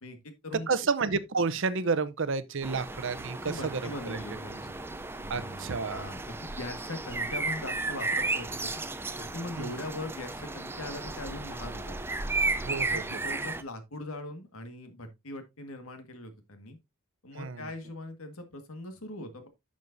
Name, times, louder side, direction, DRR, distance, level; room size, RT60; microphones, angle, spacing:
voice 1, 0.0-0.9 3.4-4.7 5.2-8.7 9.2-11.9 12.7-16.8 17.2-19.5, left 2 dB, 80° left, 1.7 m, -41 dB
voice 2, 0.7-3.8 4.1-4.2 5.3-6.1 9.6-9.7 12.6-13.0 17.4-17.7, right 4 dB, 60° right, 0.7 m, -30 dB
sound 1, 2.6-13.6, right 3 dB, 10° right, 0.5 m, -34 dB
10.5 x 6.3 x 2.6 m
head